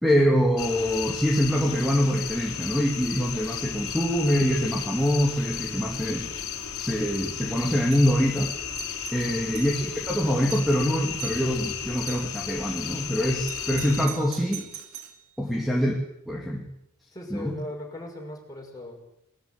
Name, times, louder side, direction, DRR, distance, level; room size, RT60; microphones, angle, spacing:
voice 1, 0.0-6.3 6.8-8.5 9.1-14.7 15.4-15.9 16.3-16.7 17.3-17.6, equal, ahead, 0 dB, 2.4 m, -24 dB
sound 1, 0.6-14.1, left 8 dB, 70° left, 3.0 m, -34 dB
Doorbell, 7.8-8.1 8.6-9.8 10.2-10.3 10.5-10.8 11.2-11.5 12.1-12.4 13.5-15.2, right 10 dB, 75° right, 2.5 m, -41 dB
voice 2, 9.2-9.5 15.4-15.6 17.1-19.0, left 1 dB, 15° left, -1 dB, 6.1 m, -39 dB
21.0 x 14.0 x 9.4 m, 0.79 s
head